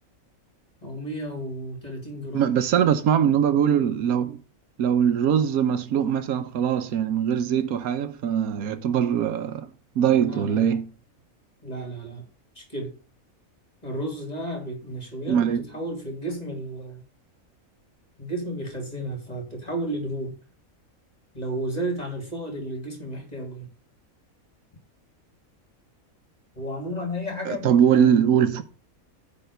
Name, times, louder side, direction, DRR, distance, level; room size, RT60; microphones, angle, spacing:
voice 1, 0.8-2.5 10.2-10.7 11.6-12.2 12.6-12.9 13.8-17.0 18.2-20.3 21.3-23.7 26.6-28.2, right 1 dB, 30° left, 2.7 m, -33 dB
voice 2, 2.3-4.4 4.8-9.7 10.0-10.9 15.3-15.6 27.4-28.6, right 8 dB, 85° right, 1.3 m, -22 dB
10.0 x 4.1 x 6.7 m
omnidirectional pair, 1.5 m